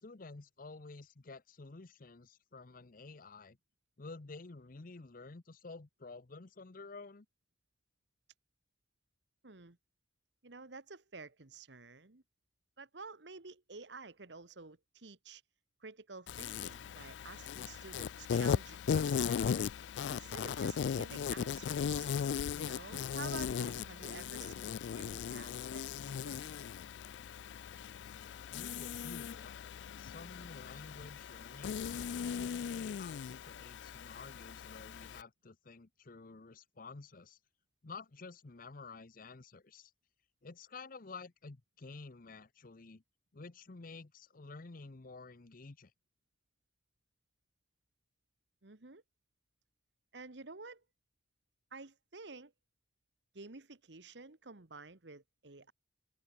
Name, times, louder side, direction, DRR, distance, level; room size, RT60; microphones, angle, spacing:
voice 1, 0.0-3.6 4.0-7.3 28.5-29.7 30.0-37.4 37.8-39.9 40.4-43.0 43.3-45.9, left 3 dB, 50° left, 0.8 m, -51 dB
voice 2, 9.4-9.8 10.4-12.2 12.8-15.4 15.8-19.6 20.1-22.1 22.6-26.5 48.6-49.0 50.1-50.8 51.7-52.5 53.3-55.7, right 4 dB, 70° right, 1.5 m, -51 dB
Insect, 16.3-35.2, left 7 dB, 75° left, 0.3 m, -38 dB
open air
head